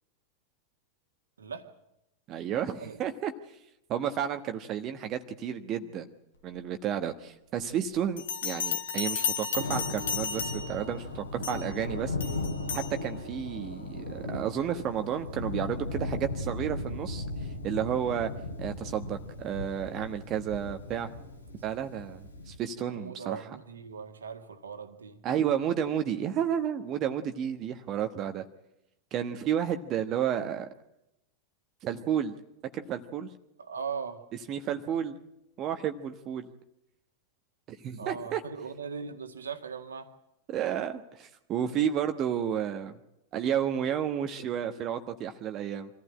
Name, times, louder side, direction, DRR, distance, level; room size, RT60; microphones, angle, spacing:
voice 1, 2.3-3.3 3.9-6.1 6.4-12.1 12.7-17.2 17.6-18.3 18.6-21.1 21.6-23.4 25.2-28.4 29.1-30.7 31.8-32.3 32.7-33.3 34.5-35.2 35.6-36.5 37.7-38.4 40.5-43.0 43.3-45.9, right 9 dB, 35° right, 8 dB, 1.2 m, -31 dB
Bell, 8.2-10.9 11.4-11.7 12.2-12.9, left 7 dB, 60° left, 2.0 m, -33 dB
Thunder, 9.5-22.6, left 2 dB, 80° left, 2.5 m, -37 dB
voice 2, 21.8-22.2 22.8-25.2 33.6-34.3 38.0-40.1, right 6 dB, 70° right, 6 dB, 2.0 m, -39 dB
25.5 x 15.0 x 8.9 m, 0.87 s
figure-of-eight pair, 90°, 0 cm